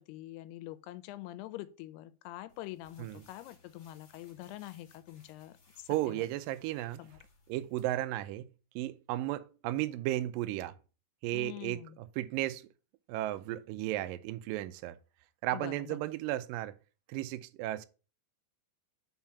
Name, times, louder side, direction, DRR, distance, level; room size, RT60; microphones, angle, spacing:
voice 1, 0.0-6.3 7.0-7.1 11.3-12.0 15.5-16.0, left 15 dB, 90° left, 2.6 m, -45 dB
sound 1, 2.5-7.9, left 4 dB, 45° left, 2.2 m, -64 dB
voice 2, 5.9-7.0 7.5-8.5 8.8-10.8 11.2-12.6 13.1-15.0 15.4-16.8 17.1-17.9, right 15 dB, 85° right, 2.0 m, -34 dB
5.8 x 4.8 x 5.8 m
omnidirectional pair, 4.5 m